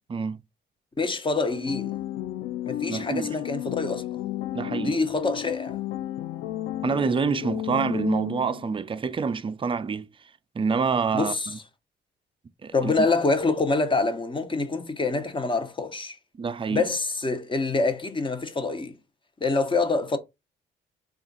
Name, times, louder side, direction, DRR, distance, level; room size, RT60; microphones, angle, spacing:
voice 1, 0.1-0.4 2.9-3.2 4.5-5.0 6.8-10.1 10.5-11.6 12.6-12.9 16.4-16.9, right 5 dB, 25° right, 0.4 m, -27 dB
voice 2, 1.0-2.0 2.6-4.1 4.8-5.8 11.1-11.5 12.7-16.2 16.7-19.0 19.4-20.2, left 3 dB, 25° left, 0.8 m, -26 dB
sound 1, 1.5-8.8, left 13 dB, 85° left, 0.4 m, -33 dB
3.6 x 2.4 x 3.8 m
cardioid pair, 90°, 20 cm